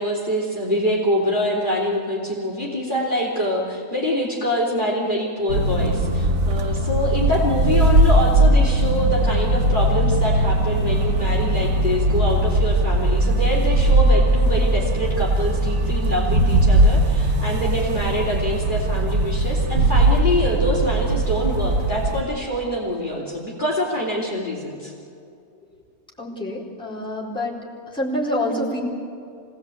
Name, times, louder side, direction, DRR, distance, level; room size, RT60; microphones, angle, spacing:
voice 1, 0.0-24.9, left 1 dB, 30° left, -3 dB, 3.4 m, -25 dB
sound 1, 5.5-22.2, right 1 dB, 65° right, 1.7 m, -19 dB
voice 2, 26.2-27.6 27.9-28.8, left 1 dB, 5° left, -6 dB, 4.2 m, -26 dB
25.5 x 18.0 x 8.4 m, 2.5 s
omnidirectional pair, 1.6 m